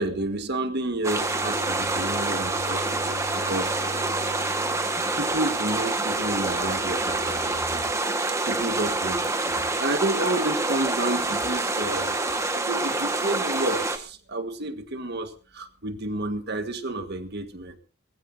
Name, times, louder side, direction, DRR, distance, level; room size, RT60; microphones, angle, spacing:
voice 1, 0.0-3.8 5.1-7.9 8.4-12.2 12.5-17.8, right 2 dB, 55° right, 7 dB, 1.7 m, -30 dB
sound 1, 1.0-14.0, right 2 dB, 15° right, 1.5 m, -27 dB
Bowed string instrument, 1.0-5.9, equal, 70° right, 2.8 m, -41 dB
22.0 x 15.0 x 2.7 m, 0.34 s
head